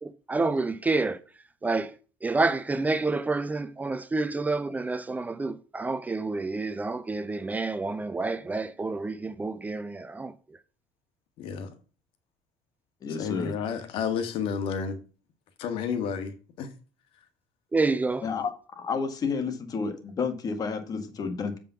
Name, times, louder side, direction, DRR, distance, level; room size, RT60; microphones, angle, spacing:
voice 1, 0.0-1.2 1.6-1.9 2.2-10.3 17.7-18.2, right 3 dB, 15° right, 0.6 m, -28 dB
voice 2, 11.4-11.7 13.2-15.0 15.6-16.7, left 6 dB, 70° left, 1.6 m, -31 dB
voice 3, 13.0-13.5 18.2-18.5 18.8-21.6, left 5 dB, 40° left, 1.9 m, -30 dB
7.5 x 5.4 x 5.8 m
cardioid pair, 110°, 10 cm